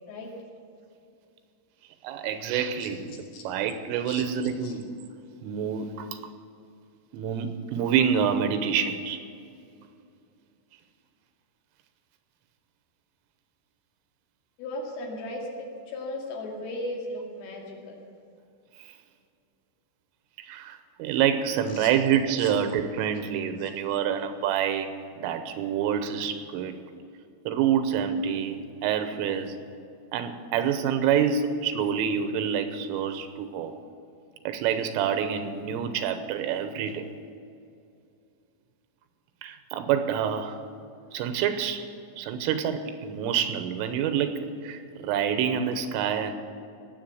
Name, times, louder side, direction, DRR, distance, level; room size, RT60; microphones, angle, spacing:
voice 1, 2.0-4.9 5.4-6.2 7.1-9.2 20.4-24.9 25.2-26.8 27.5-29.6 30.1-33.7 34.5-37.1 39.4-40.6 41.1-41.8 42.2-46.3, right 8 dB, 80° right, 9 dB, 3.4 m, -27 dB
voice 2, 14.6-15.5 15.9-18.0 21.7-21.9 22.4-22.5 23.6-23.7, left 1 dB, 80° left, -1 dB, 4.9 m, -36 dB
19.0 x 8.0 x 7.8 m, 2.5 s
omnidirectional pair, 5.9 m